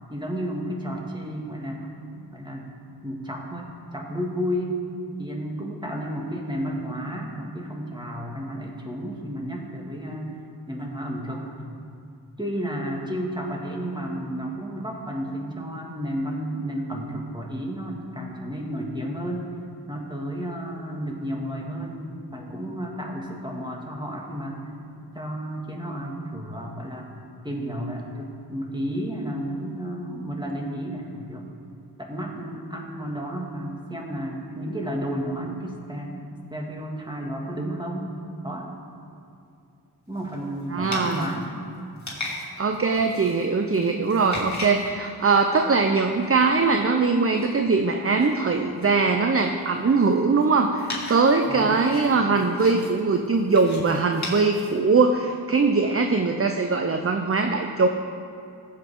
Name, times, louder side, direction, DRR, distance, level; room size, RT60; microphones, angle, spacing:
voice 1, 0.1-1.9 2.3-2.7 3.0-4.8 5.2-10.4 10.7-11.6 12.4-19.5 19.9-24.6 25.1-27.1 27.4-31.5 32.0-36.2 36.5-38.1 38.4-38.7 40.1-41.6 51.5-51.8, equal, 10° right, -1 dB, 2.2 m, -32 dB
sound 1, 40.1-45.7 46.2-46.9 47.1-55.2, left 2 dB, 45° left, 2.8 m, -39 dB
voice 2, 40.7-41.3 42.6-57.9, right 4 dB, 35° right, 5 dB, 0.7 m, -21 dB
15.0 x 8.1 x 3.8 m, 2.6 s
cardioid pair, 45°, 40 cm